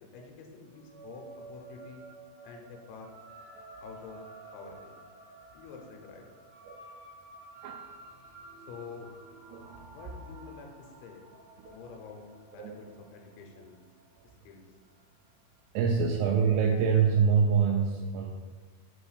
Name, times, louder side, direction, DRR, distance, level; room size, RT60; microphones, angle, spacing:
voice 1, 0.1-1.2 1.5-2.0 2.4-3.1 3.8-4.2 4.5-4.9 5.5-6.3 8.7-9.1 9.9-11.2 11.7-13.8 14.4-14.6, left 5 dB, 85° left, 2 dB, 3.1 m, -47 dB
sound 1, 0.6-15.4, right 2 dB, 65° right, 1.7 m, -51 dB
voice 2, 7.6-8.1 9.5-9.9 11.6-11.8 12.6-12.8 15.7-18.3, right 6 dB, 90° right, 0 dB, 2.4 m, -26 dB
6.6 x 3.1 x 4.8 m, 1.4 s
omnidirectional pair, 5.3 m